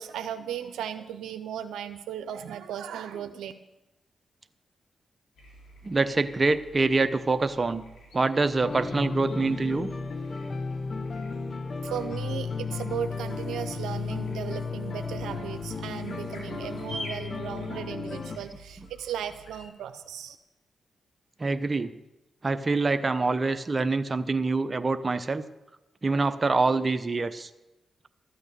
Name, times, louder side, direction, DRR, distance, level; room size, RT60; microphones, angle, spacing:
voice 1, 0.0-3.5 11.8-20.4, right 9 dB, 90° right, 8 dB, 0.6 m, -36 dB
sound 1, 5.3-19.7, equal, 85° left, 3.0 m, -48 dB
voice 2, 5.8-7.8 8.1-9.9 21.4-21.9 22.4-25.4 26.0-27.5, right 3 dB, 40° right, 10 dB, 0.8 m, -25 dB
sound 2, 8.6-18.4, left 4 dB, 55° left, 1.1 m, -34 dB
13.5 x 8.8 x 6.9 m, 1.0 s
supercardioid pair, 50°, 0 cm